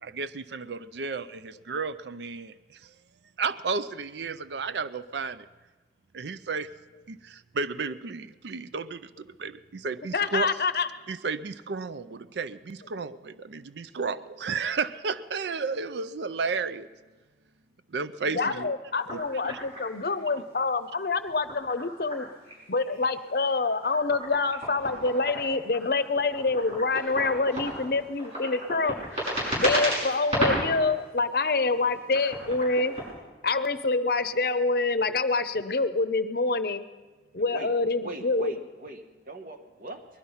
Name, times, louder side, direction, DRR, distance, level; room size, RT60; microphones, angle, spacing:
voice 1, 0.0-2.5 2.8-2.9 3.4-5.5 6.1-6.7 7.1-10.6 11.1-16.9 17.9-18.7 19.1-19.6, right 4 dB, 80° right, 14 dB, 0.5 m, -33 dB
voice 2, 10.1-10.9 18.3-22.3 22.7-29.0 29.6-32.9 33.4-36.8 37.3-38.6, left 3 dB, 55° left, 12 dB, 0.7 m, -26 dB
sound 1, 19.0-20.3 21.2-22.5 22.8-30.8 31.3-33.1, equal, 35° right, 6.5 m, -33 dB
voice 3, 37.5-40.1, right 1 dB, 50° right, 6 dB, 1.2 m, -41 dB
20.5 x 12.0 x 5.6 m, 1.3 s
head